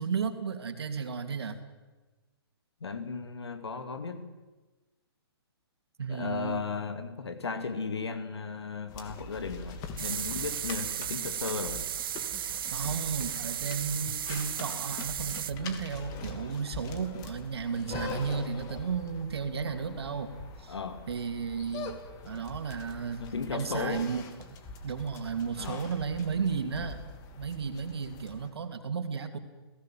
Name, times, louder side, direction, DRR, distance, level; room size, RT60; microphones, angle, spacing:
voice 1, 0.0-1.6 6.0-6.6 12.7-20.3 20.6-20.7 21.1-21.9 22.2-23.2 23.5-24.2 24.8-27.0 27.4-29.4, right 6 dB, 75° right, 7 dB, 2.8 m, -33 dB
voice 2, 2.8-4.3 6.1-11.9 20.7-21.1 23.2-24.1 25.6-25.9, left 5 dB, 85° left, 9 dB, 2.5 m, -35 dB
sound 1, 8.9-28.5, left 4 dB, 30° left, 2.9 m, -44 dB
sound 2, 10.0-15.5, right 10 dB, 60° right, 0.7 m, -35 dB
30.0 x 17.0 x 7.6 m, 1.2 s
hypercardioid pair, 135°, 13 cm